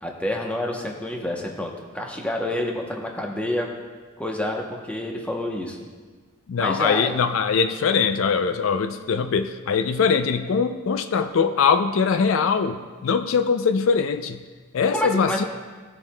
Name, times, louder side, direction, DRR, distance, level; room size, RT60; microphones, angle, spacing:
voice 1, 0.0-3.7 4.2-5.8 6.6-7.1 14.9-15.4, left 1 dB, 5° left, 0 dB, 0.8 m, -28 dB
voice 2, 6.5-14.4 14.7-15.5, left 5 dB, 75° left, 9 dB, 0.4 m, -22 dB
15.0 x 7.1 x 2.2 m, 1.4 s
head